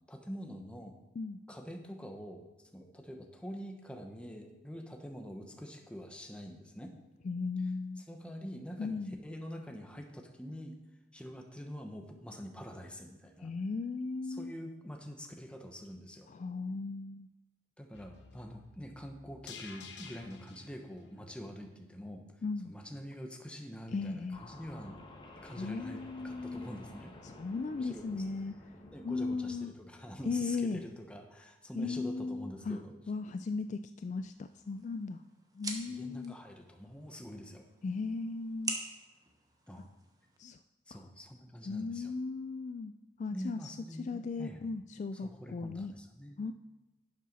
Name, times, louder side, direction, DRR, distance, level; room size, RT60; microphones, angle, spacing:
voice 1, 0.1-1.0 1.5-2.4 2.7-6.9 8.1-10.8 11.1-13.5 14.3-16.3 17.8-22.2 22.6-25.0 25.4-27.1 27.8-28.2 28.9-32.9 35.9-37.6 39.7-39.8 40.9-42.1 43.3-44.6 45.2-46.4, equal, 5° left, 3 dB, 1.1 m, -45 dB
voice 2, 7.2-8.0 8.8-9.2 13.4-14.5 16.3-17.3 22.4-22.7 23.9-24.4 25.4-26.7 27.2-28.5 29.0-29.7 30.3-30.8 31.8-32.8 33.1-35.2 35.5-36.4 37.8-38.8 40.4-40.6 40.9-41.0 41.7-42.9 43.2-45.9 46.4-46.5, left 4 dB, 40° left, 10 dB, 0.3 m, -37 dB
sound 1, 17.9-22.1 22.5-22.6, left 5 dB, 80° left, 1.0 m, -52 dB
sound 2, 24.3-29.6, left 1 dB, 25° left, 1.1 m, -52 dB
sound 3, 34.4-40.4, right 3 dB, 20° right, 1.1 m, -45 dB
11.0 x 7.5 x 4.1 m, 1.1 s
head